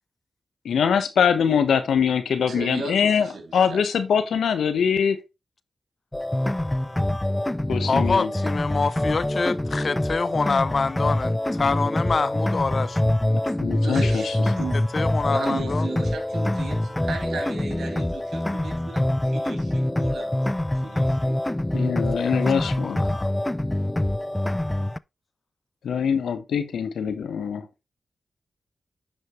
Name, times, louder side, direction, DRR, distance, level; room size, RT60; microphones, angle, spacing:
voice 1, 0.6-5.2 7.7-8.3 13.6-14.7 21.7-23.0 25.8-27.7, left 7 dB, 85° left, 1.2 m, -23 dB
voice 2, 2.5-3.8 13.8-14.8 15.3-20.4 20.7-21.4, right 4 dB, 80° right, 3.4 m, -36 dB
sound 1, 6.1-25.0, left 1 dB, 15° left, 0.4 m, -25 dB
voice 3, 7.8-13.0 14.7-15.9 22.2-23.3, left 4 dB, 55° left, 0.7 m, -26 dB
10.0 x 5.4 x 3.2 m
cardioid pair, 45°, 0 cm